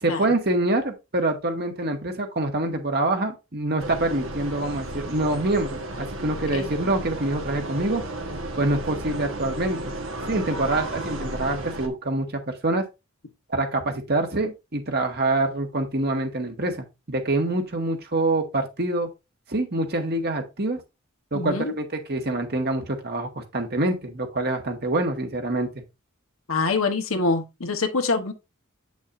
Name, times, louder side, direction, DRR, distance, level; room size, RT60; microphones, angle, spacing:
voice 1, 0.0-8.0 8.6-9.9 10.3-12.8 13.5-19.1 19.5-20.8 21.3-25.7, right 2 dB, 50° right, 1.5 m, -25 dB
sound 1, 3.8-11.9, right 1 dB, 65° right, 1.2 m, -33 dB
voice 2, 21.3-21.7 26.5-28.3, left 3 dB, 75° left, 1.1 m, -25 dB
8.4 x 6.1 x 2.5 m
head